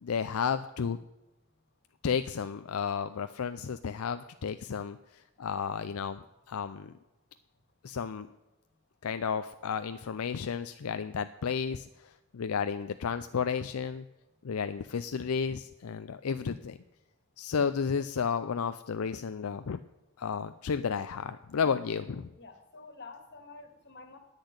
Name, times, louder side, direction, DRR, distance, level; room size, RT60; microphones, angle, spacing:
voice 1, 0.0-1.0 2.0-6.9 7.8-8.3 9.0-14.0 14.4-16.8 17.4-19.8 20.2-22.3, left 6 dB, 80° left, 11 dB, 0.5 m, -32 dB
voice 2, 22.4-24.2, left 3 dB, 55° left, 7 dB, 1.8 m, -49 dB
10.5 x 8.4 x 9.6 m, 1.0 s
head